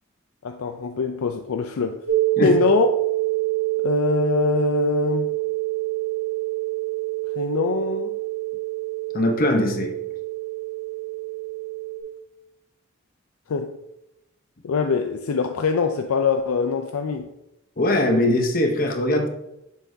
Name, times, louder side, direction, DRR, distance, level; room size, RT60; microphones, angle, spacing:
voice 1, 0.4-2.0 2.4-2.9 3.8-5.3 7.4-8.2 13.5-13.8 14.6-17.3, left 5 dB, 80° left, 0.5 m, -23 dB
sound 1, 2.1-12.0, right 20 dB, 60° right, 1.3 m, -26 dB
voice 2, 9.1-9.9 17.8-19.3, left 1 dB, 40° left, 0.8 m, -21 dB
7.8 x 6.8 x 2.7 m
head